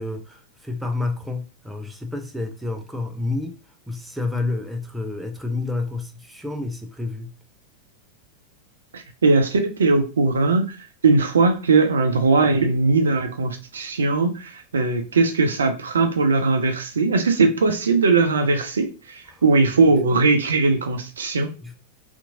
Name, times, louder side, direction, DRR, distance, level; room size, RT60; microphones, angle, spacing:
voice 1, 0.0-3.6 3.9-7.3 19.3-19.4 19.8-19.9 21.6-21.7, left 3 dB, 5° right, 0.4 m, -29 dB
voice 2, 8.9-21.5, right 3 dB, 70° right, 0.5 m, -20 dB
2.8 x 2.5 x 2.6 m
figure-of-eight pair, 90°, 0 cm